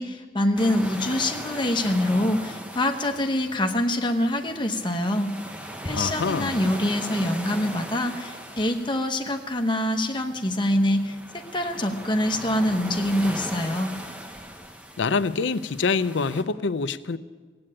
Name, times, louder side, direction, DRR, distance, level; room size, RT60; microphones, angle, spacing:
voice 1, 0.0-5.3 5.8-11.2 11.5-13.9, left 1 dB, 25° left, 1.0 m, -25 dB
sound 1, 0.6-16.4, right 1 dB, 5° right, 0.9 m, -39 dB
voice 2, 5.9-6.6 15.0-17.2, left 4 dB, 85° left, 0.5 m, -25 dB
16.0 x 8.8 x 8.8 m
head